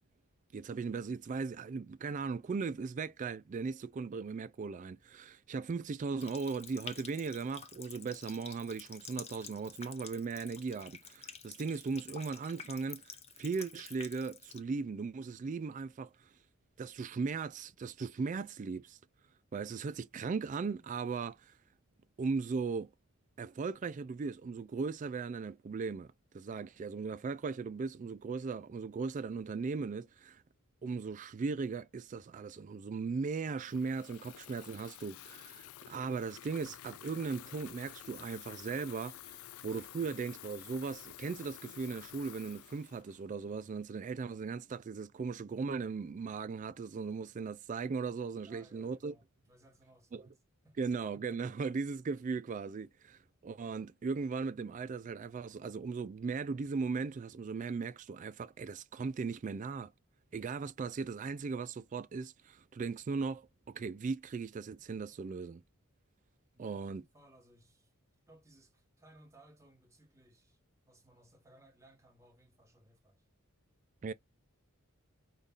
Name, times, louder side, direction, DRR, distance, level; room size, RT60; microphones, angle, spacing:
voice 1, 0.5-16.3 16.8-19.0 19.5-21.6 22.2-22.9 23.4-30.4 30.8-49.1 50.1-50.2 50.8-59.9 60.3-65.6 66.6-67.0 74.0-74.1, right 4 dB, 35° right, 0.3 m, -38 dB
Water tap faucet, 6.2-14.6, left 6 dB, 30° left, 0.7 m, -50 dB
Water tap faucet / Fill (with liquid), 33.6-43.8, left 13 dB, 75° left, 0.3 m, -51 dB
voice 2, 48.3-50.3 50.6-50.9 66.5-67.9 68.3-73.2, right 1 dB, 15° right, 1.4 m, -63 dB
5.2 x 2.4 x 3.9 m
head